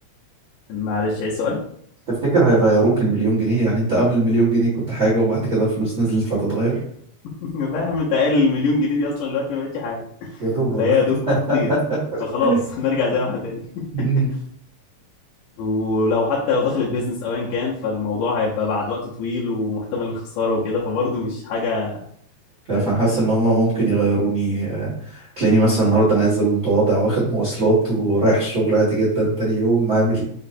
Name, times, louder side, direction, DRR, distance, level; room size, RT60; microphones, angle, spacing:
voice 1, 0.7-1.6 7.4-10.4 10.8-11.7 12.2-14.4 15.6-22.1 22.7-22.9, left 3 dB, 85° left, -6 dB, 2.3 m, -23 dB
voice 2, 2.2-6.8 10.4-10.9 11.3-11.8 12.4-12.6 13.9-14.3 22.7-30.2, right 2 dB, 35° right, -7 dB, 1.2 m, -19 dB
5.4 x 2.1 x 4.1 m, 0.63 s
omnidirectional pair, 3.5 m